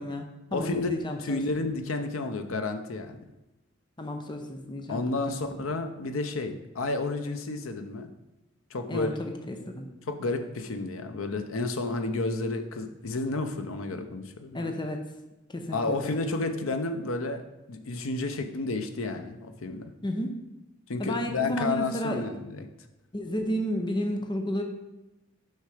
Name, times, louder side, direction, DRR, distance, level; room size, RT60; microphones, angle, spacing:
voice 1, 0.0-1.4 4.0-5.1 8.9-9.9 14.5-15.0 15.5-16.2 20.0-20.4 21.0-22.2 23.1-24.6, equal, 25° left, 4 dB, 0.7 m, -32 dB
voice 2, 0.5-0.9 1.2-3.2 4.9-8.1 8.7-9.1 10.1-14.7 15.7-17.4 17.7-19.9 20.9-22.6, left 3 dB, 90° left, 7 dB, 0.7 m, -31 dB
6.5 x 5.7 x 4.9 m, 0.97 s
head